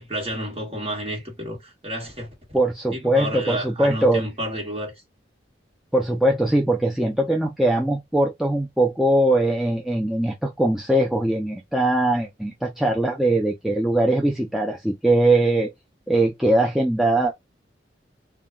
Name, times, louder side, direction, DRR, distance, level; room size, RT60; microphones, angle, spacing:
voice 1, 0.0-2.6 2.9-4.9, equal, 30° right, 1.2 m, -31 dB
voice 2, 2.5-4.2 5.9-15.7 16.1-17.3, right 1 dB, ahead, 0.3 m, -21 dB
2.2 x 2.1 x 3.5 m
head